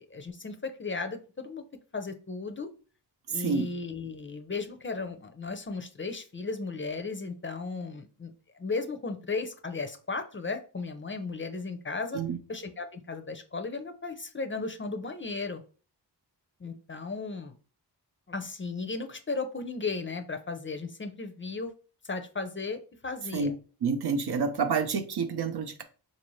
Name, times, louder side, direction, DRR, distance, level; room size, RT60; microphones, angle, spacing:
voice 1, 0.0-1.6 1.9-2.7 3.3-8.3 8.6-12.2 12.5-15.6 16.6-17.6 18.3-21.7 22.0-23.5, left 4 dB, 30° left, 6 dB, 0.5 m, -35 dB
voice 2, 23.8-25.8, right 5 dB, 65° right, 7 dB, 0.7 m, -28 dB
4.1 x 2.6 x 3.1 m, 0.37 s
cardioid pair, 65°, 41 cm